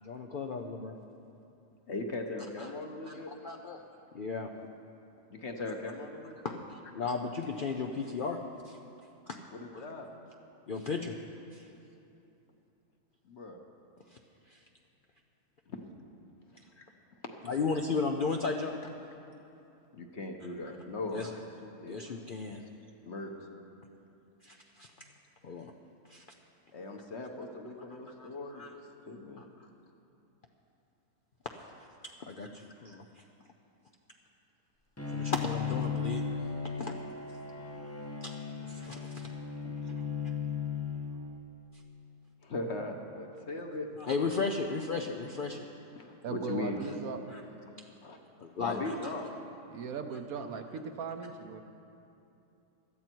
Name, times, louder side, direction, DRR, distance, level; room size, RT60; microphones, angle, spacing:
voice 1, 0.0-0.9 2.6-2.7 3.1-3.8 4.1-4.5 6.4-8.4 8.6-8.8 9.3-9.4 9.7-9.8 10.7-11.2 11.5-11.7 14.1-14.2 14.5-14.6 17.4-18.7 21.1-21.3 21.9-22.6 24.4-24.9 25.4-25.7 26.1-26.2 28.2-28.7 29.4-29.5 32.2-33.2 35.1-36.2 36.8-36.9 38.2-38.3 38.6-39.3 39.9-40.0 44.1-45.6 47.3-47.4 48.4-49.1, left 4 dB, 75° left, 2 dB, 0.4 m, -35 dB
voice 2, 1.9-3.3 5.3-6.6 9.5-10.1 13.2-13.6 15.7-15.8 16.8-16.9 17.2-17.6 19.9-21.3 21.6-22.2 23.0-23.3 25.0-25.1 26.7-29.4 39.6-39.7 42.4-43.9 45.9-46.8 48.0-48.2 48.6-49.3, left 2 dB, 45° left, 3 dB, 1.1 m, -39 dB
Bowed string instrument, 35.0-41.6, left 6 dB, 15° left, 0.6 m, -36 dB
voice 3, 46.2-47.2 49.7-51.6, right 6 dB, 65° right, 7 dB, 1.1 m, -38 dB
17.0 x 12.5 x 4.5 m, 2.8 s
omnidirectional pair, 1.8 m